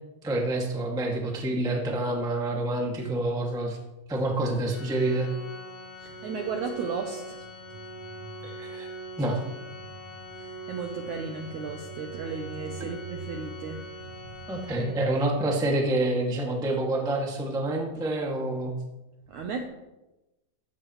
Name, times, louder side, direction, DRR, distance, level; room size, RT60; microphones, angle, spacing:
voice 1, 0.2-3.8 4.1-5.3 8.4-8.9 9.2-9.4 14.5-18.7, right 1 dB, 5° right, -1 dB, 0.7 m, -27 dB
Organ, 4.7-15.4, right 2 dB, 80° left, 4.5 m, -41 dB
voice 2, 6.0-7.4 7.7-8.6 10.2-14.4 19.3-19.6, right 5 dB, 75° right, 3 dB, 1.8 m, -35 dB
14.5 x 14.0 x 3.2 m, 1.0 s
omnidirectional pair, 4.5 m